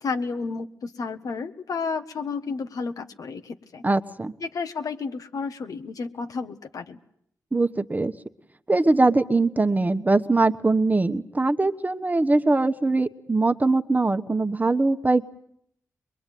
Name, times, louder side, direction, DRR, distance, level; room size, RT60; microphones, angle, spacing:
voice 1, 0.0-3.8 4.4-7.0, left 4 dB, 70° left, 7 dB, 1.5 m, -31 dB
voice 2, 3.8-4.3 7.5-8.1 8.7-15.3, right 2 dB, 25° right, 9 dB, 1.1 m, -22 dB
22.5 x 22.5 x 9.2 m, 0.71 s
cardioid pair, 60°, 6 cm